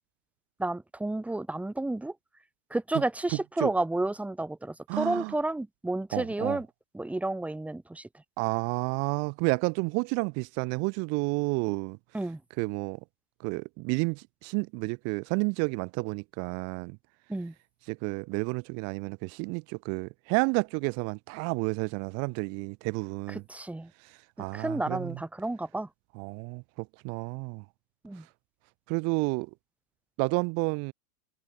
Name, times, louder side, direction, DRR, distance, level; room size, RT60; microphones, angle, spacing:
voice 1, 0.6-2.1 2.7-6.7 6.9-8.1 12.1-12.4 17.3-17.5 23.3-23.9 24.5-25.9 28.0-28.2, right 2 dB, 5° right, 3.0 m, -31 dB
voice 2, 3.3-3.7 4.9-5.3 6.1-6.6 8.4-12.0 12.6-13.0 13.4-17.0 17.9-23.4 24.0-25.2 26.1-27.6 28.9-29.5 30.2-30.9, right 33 dB, 40° right, 3.2 m, -31 dB
supercardioid pair, 150°, 38 cm